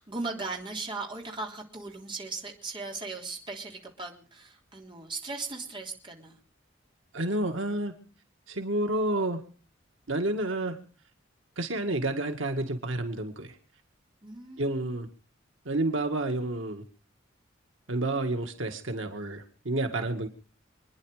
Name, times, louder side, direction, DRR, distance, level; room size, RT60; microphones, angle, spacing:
voice 1, 0.0-6.4 14.2-14.6, right 3 dB, 25° right, 1 dB, 3.3 m, -38 dB
voice 2, 7.1-7.9 8.5-9.4 10.1-10.8 11.6-13.6 14.6-15.1 15.7-16.8 17.9-20.3, right 2 dB, 85° right, 5 dB, 2.0 m, -30 dB
26.5 x 10.5 x 5.0 m, 0.39 s
head